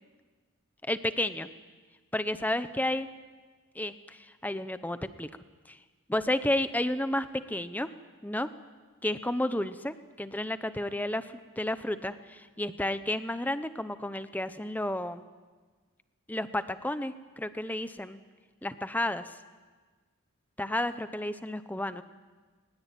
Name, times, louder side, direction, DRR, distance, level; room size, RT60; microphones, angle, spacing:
voice 1, 0.8-1.5 2.1-3.1 3.7-5.3 5.7-5.8 6.1-7.9 8.2-8.5 9.0-15.2 16.3-18.2 18.6-19.3 20.6-22.0, left 1 dB, 5° left, 12 dB, 0.8 m, -31 dB
21.0 x 20.5 x 9.1 m, 1.4 s
head